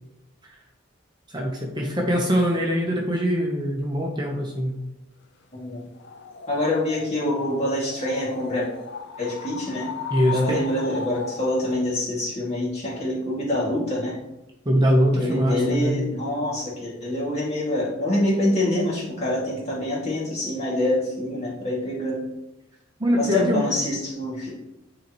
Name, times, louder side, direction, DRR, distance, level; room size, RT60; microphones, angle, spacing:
voice 1, 1.3-4.8 10.1-10.6 14.6-16.0 23.0-23.6, equal, 20° right, -1 dB, 0.9 m, -22 dB
voice 2, 5.5-5.8 6.5-8.7 9.2-9.9 10.3-14.2 15.2-22.2 23.2-24.5, left 1 dB, 35° left, -5 dB, 2.3 m, -26 dB
sound 1, 5.9-11.7, left 5 dB, 60° left, 0.5 m, -37 dB
10.0 x 3.9 x 3.0 m, 0.90 s
head